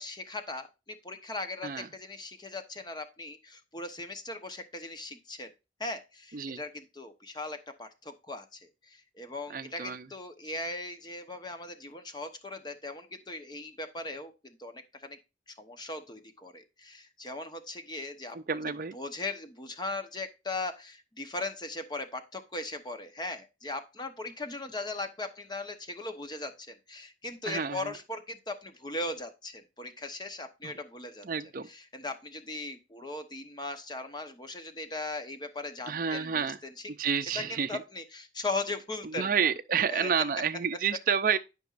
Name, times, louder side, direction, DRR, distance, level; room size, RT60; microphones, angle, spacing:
voice 1, 0.0-5.5 5.8-15.2 15.6-18.4 18.7-31.3 31.7-36.9 37.3-39.3 39.9-40.1, left 2 dB, 25° left, 0.9 m, -39 dB
voice 2, 9.5-10.0 18.3-18.9 27.5-27.9 30.6-30.7 31.2-31.7 35.9-36.6 37.0-37.8 39.0-41.4, right 7 dB, 45° right, 0.5 m, -29 dB
12.5 x 5.3 x 2.5 m
head